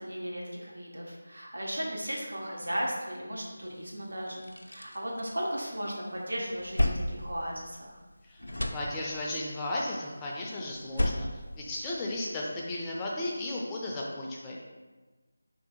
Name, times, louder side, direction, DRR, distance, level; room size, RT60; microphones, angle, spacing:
voice 1, 0.0-8.0, equal, 80° right, -3 dB, 1.1 m, -36 dB
sound 1, 3.8-3.9 4.2-5.9 6.3-8.1 8.4-9.4 10.7-12.4, left 1 dB, 90° left, 0.5 m, -33 dB
voice 2, 8.7-11.3 11.5-14.6, left 1 dB, 15° left, -4 dB, 0.4 m, -34 dB
3.4 x 2.7 x 4.3 m, 1.2 s
figure-of-eight pair, 165°, 0 cm